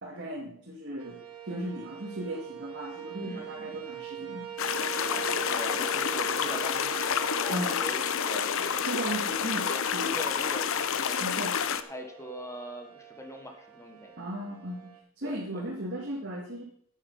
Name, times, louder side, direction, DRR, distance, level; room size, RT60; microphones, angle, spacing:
voice 1, 0.0-1.2 1.4-4.5 7.5-7.8 8.8-10.2 11.2-11.6 14.2-16.6, right 1 dB, 55° right, -2 dB, 2.3 m, -36 dB
sound 1, 1.0-15.0, right 11 dB, 80° right, 1.7 m, -43 dB
voice 2, 3.2-3.6 5.0-9.8 10.1-14.1 15.2-15.7, left 1 dB, 15° left, 5 dB, 1.6 m, -42 dB
sound 2, 4.6-11.8, left 7 dB, 65° left, 0.8 m, -29 dB
9.8 x 9.1 x 5.6 m, 0.66 s
head